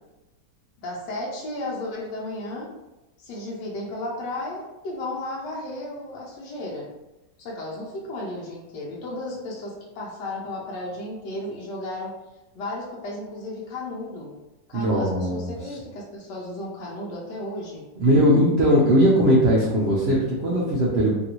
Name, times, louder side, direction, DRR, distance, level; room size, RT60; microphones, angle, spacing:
voice 1, 0.8-2.7 3.2-6.9 7.4-12.2 12.5-14.4 14.7-17.9, left 1 dB, 85° left, -3 dB, 1.3 m, -34 dB
voice 2, 14.7-15.5 18.0-21.1, equal, 80° right, -4 dB, 0.5 m, -19 dB
3.1 x 2.6 x 2.9 m, 0.99 s
omnidirectional pair, 1.8 m